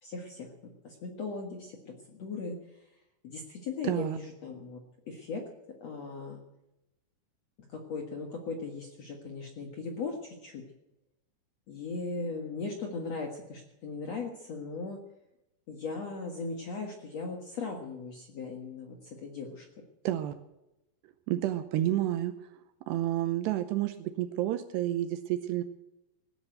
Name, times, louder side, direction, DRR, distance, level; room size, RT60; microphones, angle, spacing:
voice 1, 0.0-4.8 5.1-5.4 5.8-6.4 7.6-10.6 11.7-15.0 15.7-19.6, left 4 dB, 80° left, 2 dB, 1.5 m, -38 dB
voice 2, 3.8-4.2 20.0-20.3 21.3-22.3 22.9-25.6, right 13 dB, 80° right, 10 dB, 2.4 m, -30 dB
18.0 x 10.0 x 7.9 m, 0.91 s
omnidirectional pair, 5.8 m